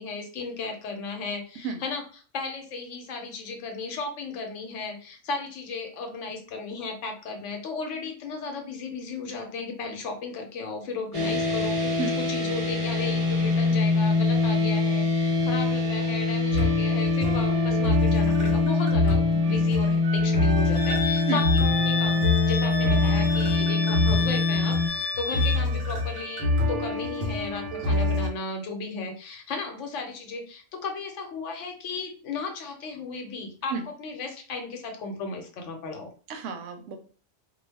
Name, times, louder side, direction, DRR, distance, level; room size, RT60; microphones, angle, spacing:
voice 1, 0.0-2.0 2.3-21.4 21.8-36.1, left 4 dB, 85° left, 4 dB, 1.0 m, -35 dB
sound 1, 11.1-24.9, left 3 dB, 35° right, 0.8 m, -24 dB
sound 2, 16.5-28.3, left 2 dB, 60° right, 1.0 m, -27 dB
Wind instrument woodwind instrument, 20.7-25.6, left 5 dB, 45° left, 0.8 m, -32 dB
voice 2, 36.3-37.0, right 5 dB, 90° right, 6 dB, 0.9 m, -31 dB
2.4 x 2.2 x 3.3 m, 0.39 s
omnidirectional pair, 1.2 m